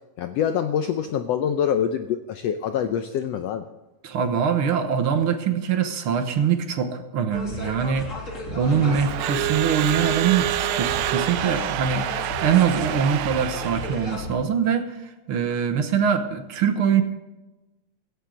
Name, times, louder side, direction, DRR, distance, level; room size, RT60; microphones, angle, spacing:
voice 1, 0.2-3.7 8.7-9.0, left 8 dB, 80° left, 8 dB, 1.4 m, -25 dB
voice 2, 4.0-12.1 12.4-17.0, right 7 dB, 60° right, 8 dB, 1.4 m, -23 dB
sound 1, 7.3-14.3, left 2 dB, 25° left, 2.6 m, -34 dB
Crowd / Alarm, 8.6-14.2, right 14 dB, 85° right, 2.2 m, -27 dB
16.5 x 14.5 x 3.9 m, 1.1 s
omnidirectional pair, 3.6 m